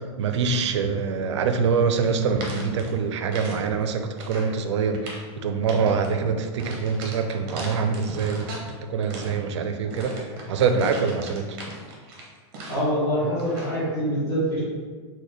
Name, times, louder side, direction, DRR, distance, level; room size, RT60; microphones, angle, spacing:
voice 1, 0.2-10.2 10.5-11.5, right 5 dB, 80° right, 7 dB, 0.4 m, -25 dB
sound 1, 1.9-3.6 3.9-4.6 4.9-5.3 5.7-6.1 6.6-8.7 9.0-13.0 13.4-13.8, right 2 dB, 30° right, 0.6 m, -39 dB
voice 2, 12.7-14.6, equal, 15° left, -10 dB, 1.1 m, -25 dB
4.0 x 2.2 x 3.2 m, 1.5 s
supercardioid pair, 175°, 15 cm